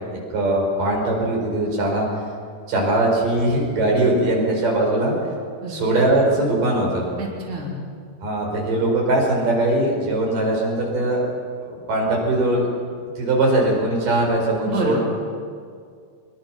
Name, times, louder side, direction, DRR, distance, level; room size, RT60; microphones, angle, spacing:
voice 1, 0.3-2.1 2.7-5.2 5.7-7.1 8.2-11.2 11.6-12.7 13.2-15.0, right 2 dB, 75° right, -1 dB, 6.4 m, -20 dB
voice 2, 7.2-7.8 14.6-15.0, right 1 dB, 20° right, -2 dB, 3.3 m, -27 dB
24.5 x 22.0 x 6.0 m, 2.2 s
omnidirectional pair, 3.9 m